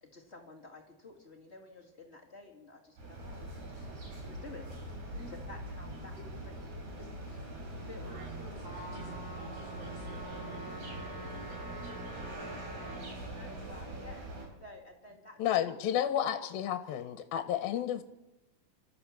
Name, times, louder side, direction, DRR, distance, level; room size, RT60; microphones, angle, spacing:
voice 1, 0.0-4.7 5.5-6.1 7.0-7.1 7.9-8.1 13.3-14.3 14.6-15.4 15.6-16.5, left 3 dB, 25° left, 0 dB, 1.8 m, -52 dB
sound 1, 3.0-14.5, right 1 dB, 50° right, 5.3 m, -43 dB
voice 2, 8.0-14.3, right 1 dB, 90° right, 1 dB, 7.6 m, -54 dB
Trumpet, 8.6-13.1, right 1 dB, 10° right, 4.7 m, -47 dB
voice 3, 15.4-18.0, left 10 dB, 80° left, 10 dB, 2.7 m, -31 dB
28.0 x 13.5 x 7.4 m, 1.1 s
omnidirectional pair, 4.3 m